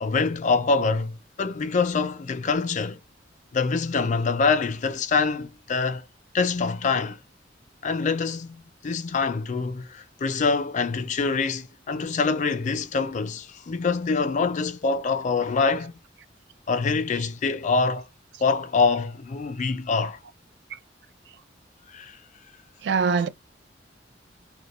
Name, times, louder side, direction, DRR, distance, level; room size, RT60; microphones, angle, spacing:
voice 1, 0.0-3.0 3.5-6.0 6.3-7.2 7.8-16.0 16.7-18.1 18.4-20.2 21.9-22.2, left 4 dB, 40° left, 0.4 m, -25 dB
voice 2, 22.8-23.3, right 5 dB, 65° right, 0.3 m, -23 dB
2.2 x 2.2 x 2.9 m
head